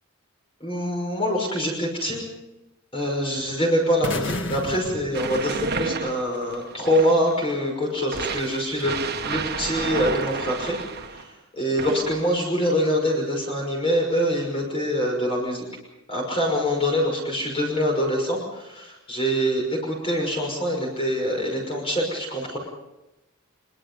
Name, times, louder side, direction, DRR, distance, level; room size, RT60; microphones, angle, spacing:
voice 1, 0.6-2.2 2.9-8.9 9.3-10.8 11.1-11.2 11.5-15.7 16.1-22.6, equal, 25° left, 0 dB, 5.8 m, -24 dB
sound 1, 4.0-6.1, left 2 dB, 55° left, 2.0 m, -32 dB
sound 2, 5.1-7.4 8.1-11.3 11.8-12.4, right 4 dB, 50° right, 1.6 m, -31 dB
24.5 x 23.5 x 5.5 m, 0.97 s
head